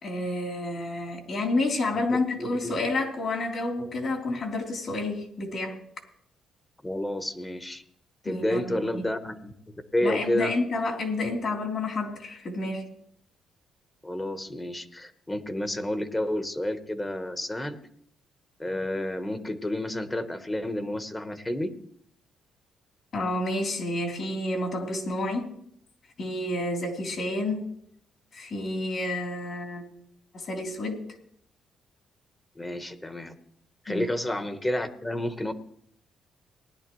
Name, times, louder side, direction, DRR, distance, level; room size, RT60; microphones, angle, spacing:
voice 1, 0.0-5.8 8.2-9.1 10.0-12.9 23.1-25.5 26.2-27.7 28.3-29.9 30.3-31.0 33.9-34.1, left 2 dB, 55° left, 0 dB, 3.3 m, -30 dB
voice 2, 2.4-2.8 6.8-7.8 8.2-10.5 14.0-17.8 18.6-21.7 32.6-33.3 33.8-35.5, left 1 dB, 15° left, 9 dB, 1.1 m, -30 dB
19.5 x 11.0 x 3.1 m, 0.68 s
cardioid pair, 90°, 0 cm